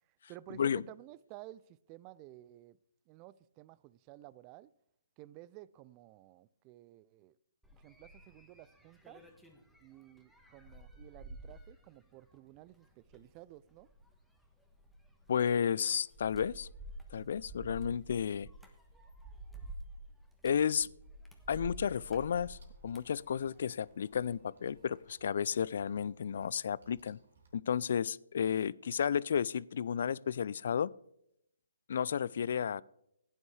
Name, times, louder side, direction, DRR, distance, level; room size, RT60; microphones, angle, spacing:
voice 1, 0.3-2.8 3.1-4.7 5.2-7.4 7.7-9.2 9.8-13.9, right 16 dB, 30° right, 0.4 m, -53 dB
sound 1, 7.6-24.4 24.7-25.1, right 1 dB, ahead, 1.3 m, -50 dB
voice 2, 15.3-16.7 17.1-18.5 20.4-20.9 21.5-22.6 22.8-27.2 27.5-30.9 31.9-32.8, left 7 dB, 60° left, 0.3 m, -32 dB
sound 2, 22.3-27.5, right 3 dB, 70° right, 2.7 m, -64 dB
16.0 x 9.7 x 3.3 m
figure-of-eight pair, 135°, 0 cm